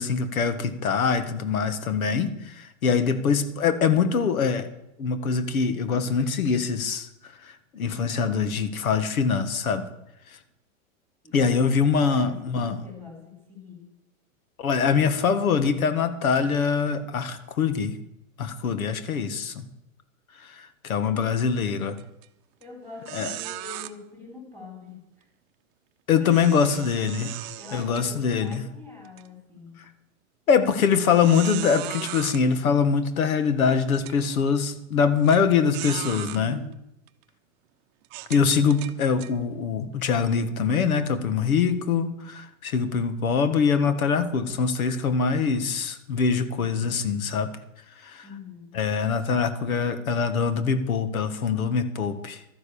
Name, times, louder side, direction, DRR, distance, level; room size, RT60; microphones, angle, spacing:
voice 1, 0.0-4.7 5.0-9.9 10.3-10.4 11.3-12.8 14.6-17.9 18.4-19.6 20.4-22.0 23.1-23.3 26.1-27.3 27.7-28.6 30.5-36.6 38.3-47.5 48.0-48.2 48.7-52.4, left 6 dB, 90° left, 11 dB, 1.6 m, -24 dB
voice 2, 11.9-13.9 22.6-25.3 26.2-29.8 36.2-36.8 48.2-48.8, left 4 dB, 5° left, 0 dB, 4.3 m, -44 dB
sound 1, 22.0-22.2 22.6-22.7 23.0-23.9 26.3-28.6 29.0-29.2 29.8-29.9 30.9-32.4 33.3-33.4 33.9-34.2 35.2-35.4 35.7-36.4 37.1-37.2 38.0-39.3, right 17 dB, 35° right, 0.8 m, -37 dB
12.5 x 10.5 x 7.0 m, 0.86 s
hypercardioid pair, 135°, 41 cm